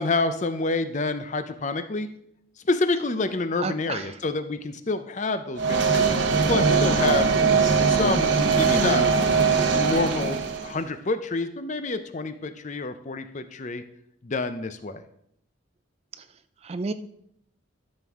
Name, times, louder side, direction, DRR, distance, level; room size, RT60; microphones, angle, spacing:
voice 1, 0.0-2.1 2.7-6.0 6.5-7.3 7.9-9.0 9.7-13.8 14.2-15.0, left 3 dB, 35° left, 10 dB, 0.5 m, -28 dB
voice 2, 3.6-4.2 16.6-16.9, right 3 dB, 30° right, 12 dB, 0.3 m, -31 dB
sound 1, 5.6-10.8, right 5 dB, 60° right, 1.0 m, -21 dB
12.5 x 6.1 x 3.6 m, 0.73 s
head